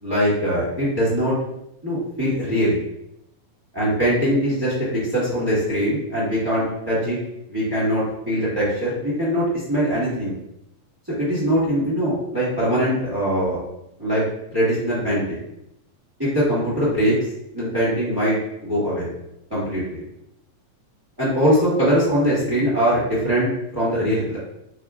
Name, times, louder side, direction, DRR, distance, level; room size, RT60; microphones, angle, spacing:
voice 1, 0.0-1.3 1.8-2.8 3.7-7.2 7.5-10.4 11.2-13.6 14.0-14.2 14.5-15.4 16.2-17.2 17.5-19.1 19.5-20.0 21.2-24.4, equal, 25° right, -9 dB, 0.5 m, -22 dB
4.8 x 4.4 x 2.5 m, 0.81 s
omnidirectional pair, 3.9 m